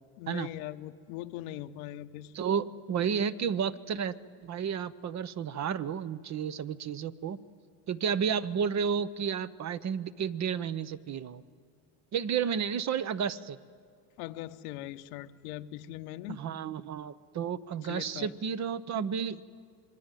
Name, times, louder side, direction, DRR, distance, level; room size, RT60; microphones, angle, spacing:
voice 1, 0.2-2.3 14.2-16.4 17.8-18.3, left 14 dB, 85° left, 9 dB, 1.2 m, -41 dB
voice 2, 2.3-7.4 7.9-11.4 12.1-13.6 16.3-19.4, right 7 dB, 40° right, 14 dB, 1.0 m, -32 dB
26.5 x 22.5 x 9.2 m, 2.2 s
supercardioid pair, 100°, 42 cm